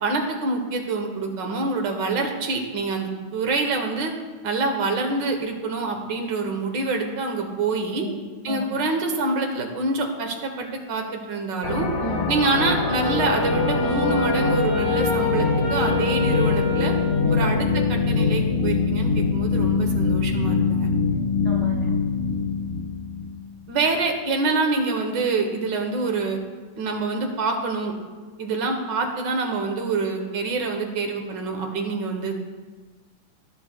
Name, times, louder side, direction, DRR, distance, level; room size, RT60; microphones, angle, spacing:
voice 1, 0.0-4.1 4.4-8.0 8.4-11.9 12.3-16.9 17.3-20.9 23.7-26.4 26.8-27.9 28.4-32.3, right 3 dB, 65° right, 4 dB, 1.6 m, -26 dB
voice 2, 7.9-8.7 12.0-12.3 17.2-17.5 21.1-21.9, left 1 dB, 35° left, -2 dB, 0.5 m, -34 dB
sound 1, 11.6-23.4, left 4 dB, 50° left, 0.9 m, -23 dB
Wind instrument woodwind instrument, 13.0-17.6, left 2 dB, 85° left, 3.4 m, -27 dB
17.5 x 6.9 x 2.2 m, 1.4 s
omnidirectional pair, 2.3 m